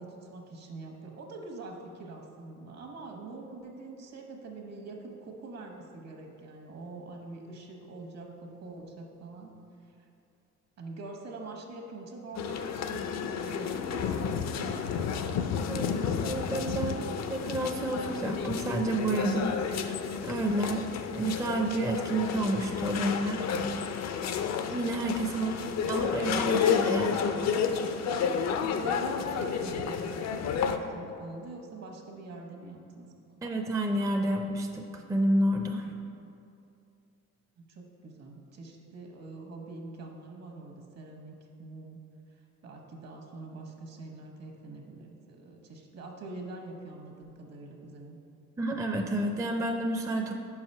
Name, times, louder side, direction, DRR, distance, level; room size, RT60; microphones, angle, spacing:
voice 1, 0.0-9.5 10.0-10.1 10.8-15.3 25.3-26.1 28.6-30.3 30.6-33.1 33.3-33.4 37.6-42.0 42.6-48.2, right 2 dB, 60° right, 1 dB, 1.1 m, -44 dB
sound 1, 12.3-30.8, left 6 dB, 60° left, 0.5 m, -31 dB
voice 2, 15.7-20.0 20.2-20.8 21.1-23.4 24.7-25.5 25.9-27.2 33.4-35.9 48.6-50.3, right 1 dB, 10° right, 3 dB, 0.4 m, -30 dB
5.3 x 4.8 x 5.4 m, 2.6 s
cardioid pair, 90°, 30 cm